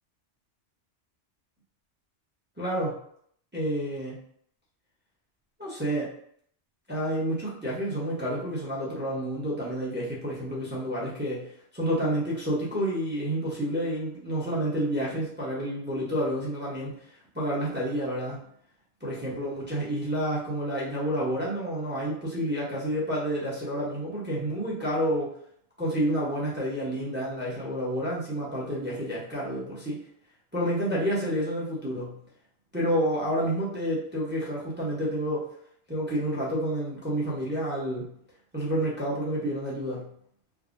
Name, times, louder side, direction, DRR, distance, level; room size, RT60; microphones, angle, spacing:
voice 1, 2.6-3.0 3.5-4.2 5.6-6.1 6.9-16.9 17.3-18.4 19.0-25.3 25.8-30.0 30.5-32.2 32.7-35.4 35.9-38.1 38.5-40.1, equal, 10° right, -6 dB, 0.5 m, -29 dB
3.4 x 2.0 x 2.4 m, 0.65 s
omnidirectional pair, 1.2 m